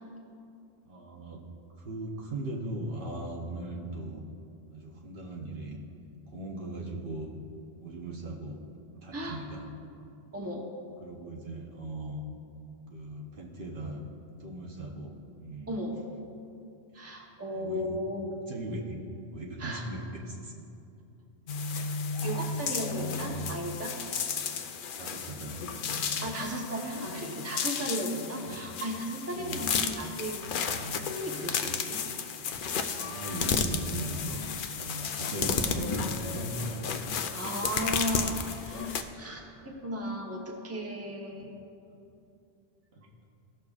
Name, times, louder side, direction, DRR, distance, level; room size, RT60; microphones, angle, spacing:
voice 1, 0.8-1.4 1.8-4.2 4.7-5.8 6.3-7.3 7.8-8.6 9.0-9.6 11.0-12.2 12.9-14.0 14.4-15.7 16.9-17.0 17.5-17.9 18.5-19.0 19.3-20.5 22.1-23.3 25.0-26.3 28.4-28.6 29.3-29.7 31.4-31.6 33.0-34.5 34.8-37.0 41.4-41.5 42.9-43.0, right 1 dB, 60° right, -2 dB, 1.1 m, -39 dB
voice 2, 10.3-10.7 15.7-15.9 16.9-18.3 19.6-19.8 22.2-23.9 26.2-30.4 31.1-32.1 35.3-35.7 37.3-41.6, equal, 15° right, -1 dB, 0.9 m, -35 dB
sound 1, 21.5-39.0, left 6 dB, 60° left, 0.7 m, -33 dB
16.0 x 6.5 x 2.4 m, 2.7 s
omnidirectional pair, 1.0 m